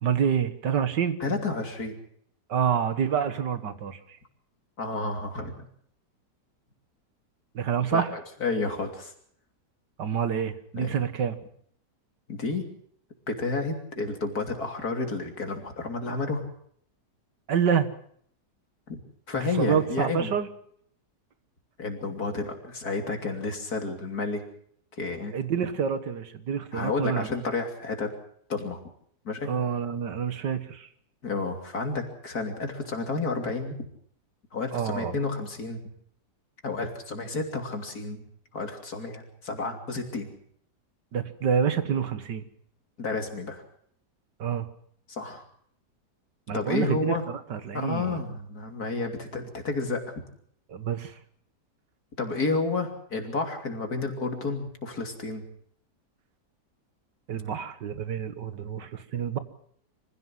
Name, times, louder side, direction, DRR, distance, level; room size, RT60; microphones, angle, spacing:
voice 1, 0.0-1.2 2.5-4.0 7.6-8.1 10.0-11.4 17.5-17.9 19.3-20.5 25.3-27.3 29.4-30.9 34.7-35.2 41.1-42.4 44.4-44.7 46.5-48.2 50.7-51.2 57.3-59.4, right 7 dB, 85° right, 11 dB, 2.1 m, -27 dB
voice 2, 1.2-2.0 4.8-5.7 7.9-9.1 10.7-11.0 12.3-12.7 13.3-16.4 18.9-19.0 19.3-20.3 21.8-24.4 25.0-25.4 26.7-28.1 28.5-28.8 29.3-29.5 31.2-33.8 34.5-35.8 36.6-38.2 38.5-40.3 43.0-43.6 45.1-45.4 46.5-47.2 47.7-50.0 52.2-55.4, left 3 dB, 60° left, 4 dB, 3.5 m, -31 dB
25.0 x 15.5 x 7.6 m, 0.65 s
omnidirectional pair, 1.8 m